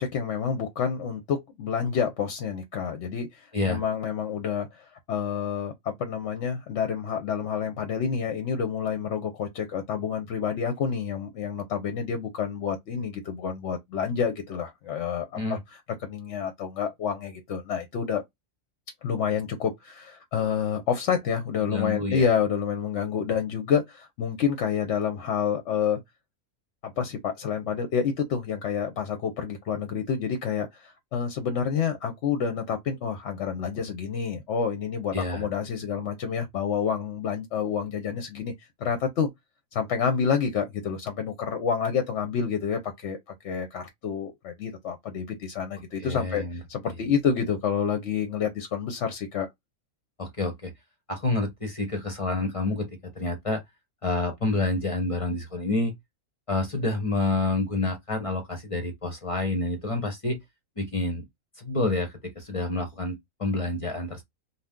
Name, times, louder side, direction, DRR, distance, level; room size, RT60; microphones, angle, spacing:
voice 1, 0.0-18.2 19.0-26.0 26.8-38.5 38.8-39.3 39.7-43.2 43.4-46.4 46.7-49.5, left 7 dB, 65° left, 0.8 m, -28 dB
voice 2, 21.6-22.2 35.1-35.5 46.0-46.6 50.2-50.7 51.1-52.9 53.2-53.6 54.0-55.9 56.5-60.4 60.8-61.2 61.6-64.2, left 2 dB, 30° left, 0.6 m, -28 dB
2.6 x 2.3 x 3.5 m
omnidirectional pair, 1.5 m